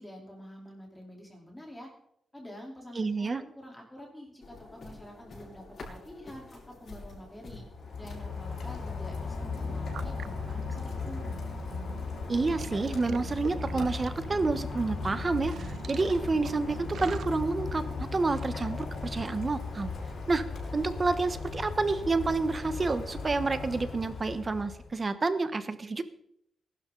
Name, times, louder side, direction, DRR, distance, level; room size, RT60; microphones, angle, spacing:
voice 1, 0.0-1.9 2.3-7.7 7.9-11.2, equal, 10° left, -1 dB, 3.8 m, -47 dB
voice 2, 2.9-3.4 12.3-19.9 20.3-20.4 20.7-26.0, right 3 dB, 30° right, 11 dB, 1.2 m, -29 dB
sound 1, 4.4-9.4, left 3 dB, 55° left, 6.6 m, -48 dB
Rain, 7.7-25.0, left 4 dB, 75° left, 6.1 m, -37 dB
sound 2, 9.4-17.3, right 8 dB, 75° right, 0.6 m, -44 dB
21.0 x 12.0 x 4.0 m, 0.74 s
wide cardioid pair, 145°, 0 cm